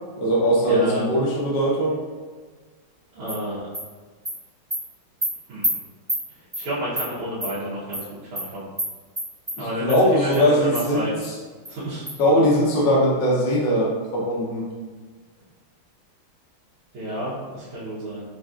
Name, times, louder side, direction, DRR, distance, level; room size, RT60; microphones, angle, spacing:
voice 1, 0.2-2.0 9.6-11.3 12.2-14.6, equal, 65° left, -5 dB, 1.2 m, -20 dB
voice 2, 0.7-1.1 3.2-3.6 5.5-5.7 6.6-8.0 8.3-8.7 9.6-11.2 11.7-12.0 16.9-18.2, equal, 85° right, -11 dB, 1.8 m, -30 dB
Animal, 3.3-3.4 3.7-3.8 4.2-4.3 4.7-4.8 5.2-5.3 5.6-5.7 6.1-6.2 6.5-6.6 6.9-7.1 7.4-7.5 7.9-8.0 8.3-8.4 8.8-8.9 9.1-9.6 9.9-10.0 10.3-10.4 10.7-10.8 11.2-11.3 11.6-11.7 12.1-12.2, equal, 15° right, 0.9 m, -26 dB
4.6 x 2.6 x 2.3 m, 1.5 s
omnidirectional pair, 2.3 m